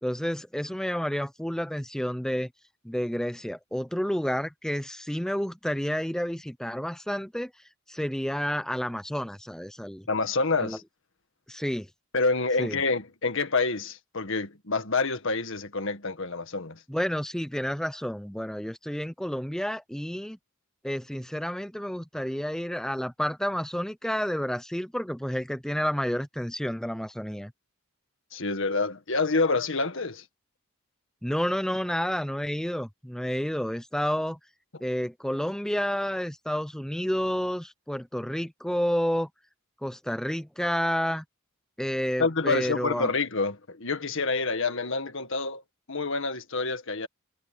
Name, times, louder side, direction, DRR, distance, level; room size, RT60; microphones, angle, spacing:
voice 1, 0.0-2.5 2.8-7.5 7.9-10.1 10.6-10.8 11.5-11.9 12.6-12.8 16.9-20.4 20.8-27.5 31.2-34.4 34.8-39.3 39.8-41.2 41.8-43.1, equal, 5° left, 0.6 m, -30 dB
voice 2, 10.1-10.8 12.1-16.8 28.3-30.2 42.2-45.6 45.9-47.1, left 3 dB, 65° left, 1.8 m, -27 dB
head